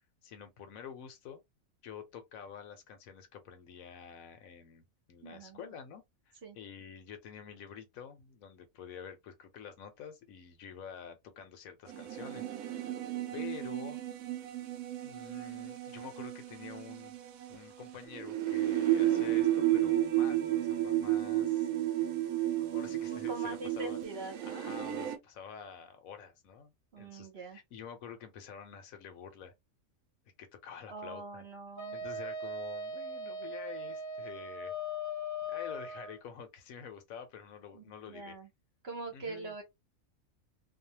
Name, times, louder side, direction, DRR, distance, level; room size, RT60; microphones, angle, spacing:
voice 1, 0.2-1.4 1.8-4.8 5.1-12.9 13.3-14.0 15.0-17.1 17.5-21.7 22.5-24.0 24.4-29.5 30.4-31.4 31.9-34.7 35.5-38.3 39.1-39.6, left 8 dB, 75° left, 1.1 m, -48 dB
voice 2, 5.2-5.8 6.4-6.6 23.1-24.6 26.9-27.6 30.9-32.0 37.7-38.5 38.8-39.6, right 3 dB, 50° right, 1.0 m, -43 dB
sound 1, 11.9-25.2, right 13 dB, 80° right, 1.0 m, -32 dB
Wind instrument woodwind instrument, 31.8-36.2, left 1 dB, 25° left, 0.4 m, -39 dB
2.7 x 2.0 x 2.8 m
omnidirectional pair, 1.5 m